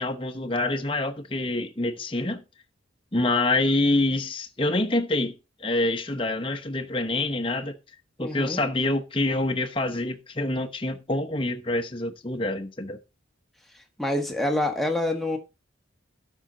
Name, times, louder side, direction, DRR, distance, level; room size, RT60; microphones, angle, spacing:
voice 1, 0.0-2.4 3.1-5.4 5.6-7.8 8.2-13.0, left 2 dB, 25° left, 1.0 m, -26 dB
voice 2, 8.2-8.6 14.0-15.4, left 1 dB, ahead, 1.4 m, -26 dB
12.5 x 5.6 x 3.9 m
head